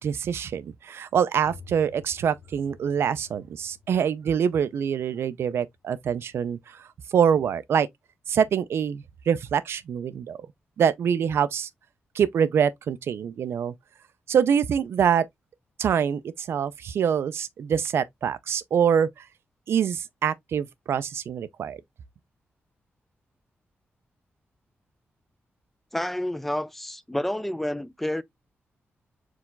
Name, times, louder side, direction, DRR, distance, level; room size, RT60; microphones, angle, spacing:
voice 1, 0.0-7.9 8.3-10.4 10.8-11.7 12.1-13.7 14.3-15.3 15.8-19.3 19.7-21.8, right 8 dB, 70° right, 0.5 m, -25 dB
sound 1, 1.4-7.0, left 5 dB, 65° left, 1.2 m, -52 dB
voice 2, 25.9-28.2, left 1 dB, 5° left, 0.3 m, -29 dB
4.6 x 2.4 x 3.8 m
wide cardioid pair, 165°, 4 cm